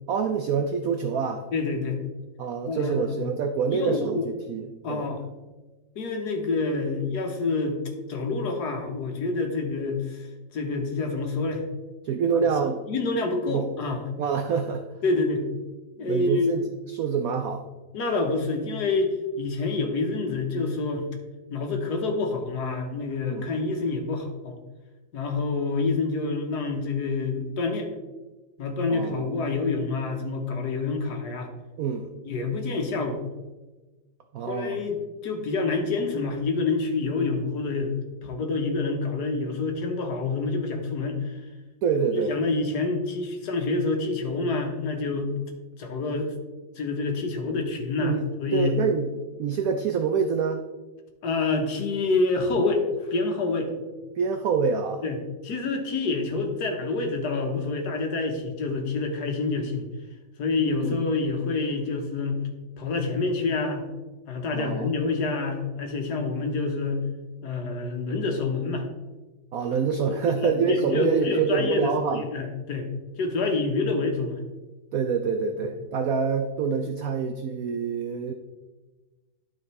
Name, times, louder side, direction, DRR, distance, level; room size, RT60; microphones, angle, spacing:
voice 1, 0.1-1.5 2.4-5.1 12.0-12.8 13.5-13.7 14.2-14.8 16.0-17.6 23.2-23.5 28.9-29.3 31.8-32.1 34.3-34.9 41.8-42.3 47.5-47.6 48.0-49.1 49.4-50.6 54.2-55.0 60.8-61.0 64.5-64.9 69.5-72.2 74.9-78.3, right 6 dB, 85° right, 6 dB, 0.7 m, -26 dB
voice 2, 1.5-2.0 2.7-3.3 3.7-4.3 4.8-5.2 5.9-7.8 8.1-10.3 10.5-11.6 12.3-12.4 12.9-14.0 15.0-15.5 16.0-16.5 17.9-21.1 21.5-24.6 25.1-27.9 28.6-31.5 32.2-33.2 34.5-37.9 38.2-41.4 41.9-45.3 45.8-46.3 46.8-48.8 51.2-53.7 54.0-54.1 55.0-59.8 60.4-62.4 62.8-63.9 64.3-67.0 67.4-68.9 70.2-72.9 73.2-74.4 75.6-75.7, left 3 dB, 60° left, 3 dB, 1.4 m, -27 dB
12.0 x 4.4 x 3.2 m, 1.2 s
omnidirectional pair, 2.2 m